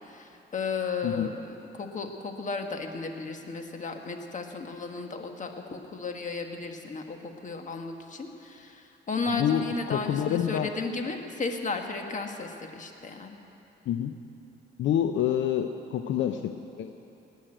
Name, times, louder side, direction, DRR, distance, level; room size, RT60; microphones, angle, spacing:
voice 1, 0.0-13.4, left 4 dB, 40° left, 4 dB, 1.5 m, -34 dB
voice 2, 9.3-10.7 13.9-14.1 14.8-16.9, left 9 dB, 70° left, 7 dB, 0.6 m, -27 dB
18.5 x 6.4 x 8.9 m, 2.9 s
cardioid pair, 90°, 20 cm